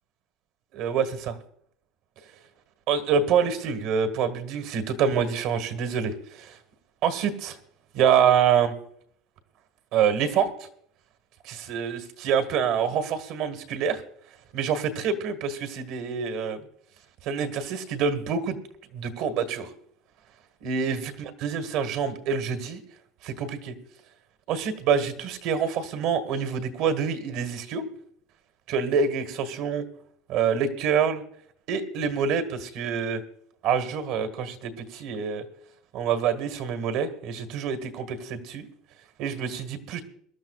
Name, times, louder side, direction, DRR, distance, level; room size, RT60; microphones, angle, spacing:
voice 1, 0.7-1.4 2.9-6.6 7.0-7.6 7.9-8.7 9.9-10.5 11.4-14.0 14.5-16.6 17.2-18.6 18.9-19.7 20.6-22.8 23.2-23.7 24.5-27.8 28.7-29.8 30.3-31.2 31.7-33.2 33.6-35.4 35.9-38.7 39.2-40.0, right 7 dB, 60° right, 9 dB, 1.6 m, -26 dB
22.5 x 12.0 x 2.4 m, 0.65 s
cardioid pair, 140°, 0 cm